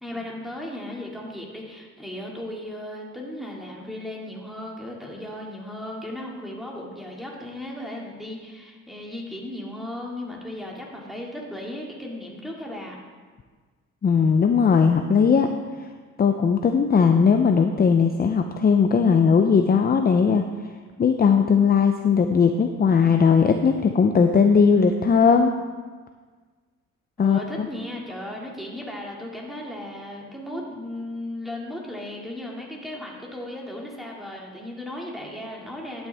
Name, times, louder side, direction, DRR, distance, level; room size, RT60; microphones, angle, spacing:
voice 1, 0.0-13.0 27.2-36.1, left 1 dB, ahead, -2 dB, 2.2 m, -36 dB
voice 2, 14.0-15.5 15.8-15.9 16.2-20.4 21.0-25.5 27.2-27.7, left 6 dB, 30° left, 6 dB, 0.6 m, -18 dB
11.5 x 9.0 x 3.5 m, 1.5 s
cardioid pair, 90°, 30 cm